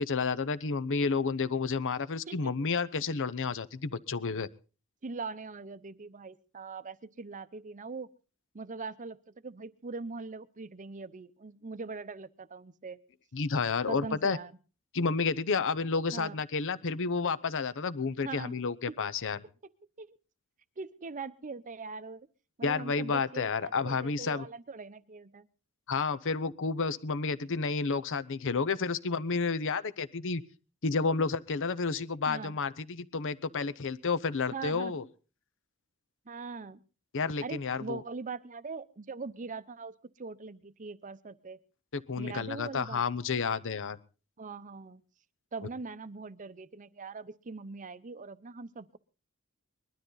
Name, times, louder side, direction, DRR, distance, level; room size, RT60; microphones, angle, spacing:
voice 1, 0.0-4.5 13.3-14.4 14.9-19.4 22.6-24.5 25.9-30.4 30.8-35.0 37.1-38.0 41.9-44.0, left 4 dB, 60° left, 14 dB, 0.7 m, -31 dB
voice 2, 2.3-2.6 5.0-8.1 8.5-13.0 13.9-14.5 16.1-16.4 18.2-18.5 18.9-19.0 20.0-20.2 20.8-22.3 22.6-25.5 32.3-32.6 34.5-34.9 36.3-36.8 37.4-41.6 42.2-43.0 44.4-45.0 45.5-49.0, right 4 dB, 35° right, 15 dB, 0.7 m, -41 dB
21.0 x 12.5 x 3.9 m, 0.35 s
head